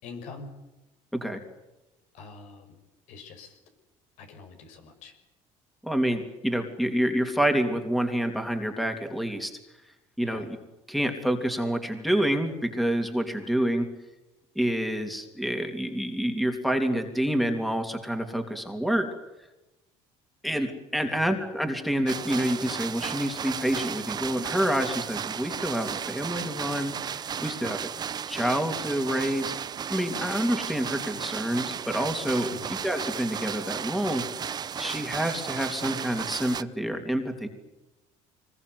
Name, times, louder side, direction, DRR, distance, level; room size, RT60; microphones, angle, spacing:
voice 1, 0.0-0.5 2.1-2.8 3.1-3.6 4.2-5.2 10.2-10.5 21.0-21.3 27.6-27.8 30.1-30.3 32.5-32.7, left 4 dB, 75° left, 5 dB, 6.0 m, -45 dB
voice 2, 5.8-9.5 10.2-10.6 10.9-13.9 14.5-19.1 20.4-27.8 28.3-29.5 29.9-34.2 34.8-37.5, equal, ahead, 5 dB, 3.1 m, -28 dB
sound 1, 22.1-36.6, right 8 dB, 35° right, 0.8 m, -34 dB
24.0 x 21.0 x 9.6 m, 0.99 s
cardioid pair, 120°, 12 cm